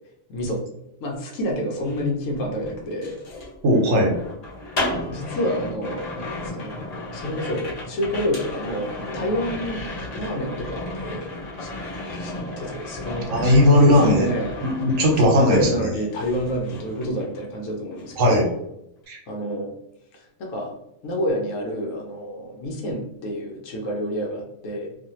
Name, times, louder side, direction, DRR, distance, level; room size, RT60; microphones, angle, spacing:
voice 1, 0.3-0.6 1.0-3.2 5.1-11.3 11.6-11.7 12.1-14.5 15.2-18.5 19.3-19.7 20.1-20.7 21.0-24.9, equal, 75° left, -1 dB, 1.0 m, -28 dB
sound 1, 1.7-15.9 16.2-17.6 17.9-18.3, left 1 dB, 40° left, 0.6 m, -34 dB
voice 2, 3.6-4.1 13.3-14.3 14.6-15.7 18.2-18.4 19.1-19.2, left 1 dB, 75° right, 0 dB, 1.1 m, -17 dB
2.5 x 2.5 x 2.9 m, 0.80 s
omnidirectional pair, 1.4 m